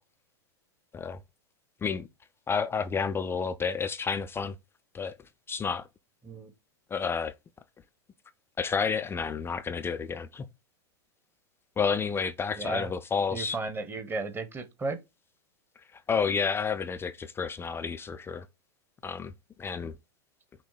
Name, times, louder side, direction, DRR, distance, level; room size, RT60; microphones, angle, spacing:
voice 1, 2.5-4.5 4.9-5.1 5.5-5.9 6.9-7.3 8.6-10.5 11.8-13.6 15.9-18.5 19.0-19.3 19.6-19.9, left 6 dB, 15° left, 0.4 m, -30 dB
voice 2, 12.5-12.9 13.3-15.0, right 3 dB, 15° right, 1.0 m, -34 dB
6.0 x 2.1 x 4.0 m
hypercardioid pair, 95°, 14 cm